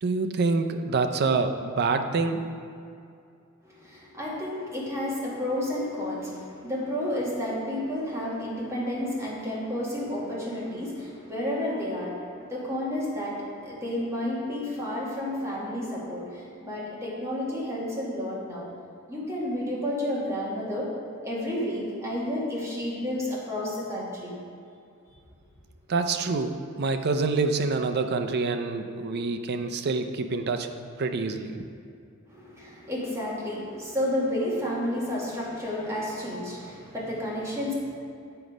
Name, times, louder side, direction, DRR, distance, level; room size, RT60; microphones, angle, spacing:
voice 1, 0.0-2.5 25.9-30.7 31.0-31.7, right 4 dB, 50° right, 7 dB, 0.5 m, -26 dB
voice 2, 3.6-18.7 19.1-20.9 21.2-24.4 32.3-37.7, left 1 dB, 15° right, -6 dB, 1.9 m, -31 dB
7.9 x 5.2 x 4.9 m, 2.4 s
head